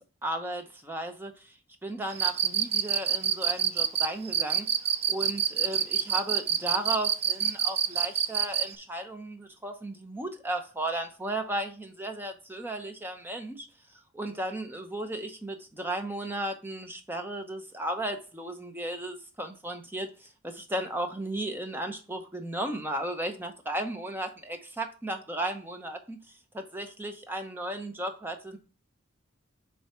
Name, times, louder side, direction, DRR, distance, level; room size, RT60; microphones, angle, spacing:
voice 1, 0.2-1.5 1.8-4.7 5.1-13.7 14.1-26.2 26.5-28.6, right 1 dB, 10° right, 0.8 m, -35 dB
Cricket, 2.1-8.7, right 9 dB, 30° right, 0.4 m, -26 dB
7.0 x 3.9 x 4.3 m
head